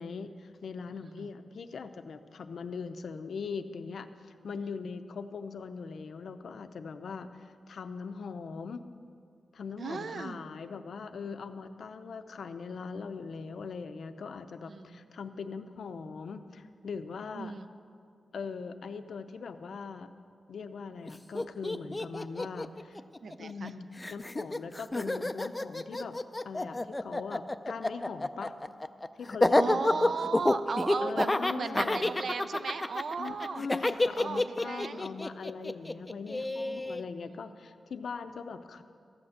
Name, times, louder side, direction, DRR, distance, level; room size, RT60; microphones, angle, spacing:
voice 1, 0.0-8.8 9.5-17.5 18.3-20.1 20.5-23.0 23.4-28.6 29.2-30.1 31.0-32.1 33.2-38.8, left 5 dB, 75° left, 9 dB, 0.6 m, -41 dB
voice 2, 9.8-10.4 14.7-15.1 17.3-17.7 23.2-23.7 29.5-33.6 34.2-35.1 36.3-36.8 37.3-37.6, right 5 dB, 60° right, 11 dB, 0.6 m, -37 dB
Laughter, 21.1-21.2 21.3-23.7 24.0-37.0, left 2 dB, 15° left, 0.4 m, -29 dB
13.5 x 8.7 x 6.5 m, 2.3 s
wide cardioid pair, 115°, 0 cm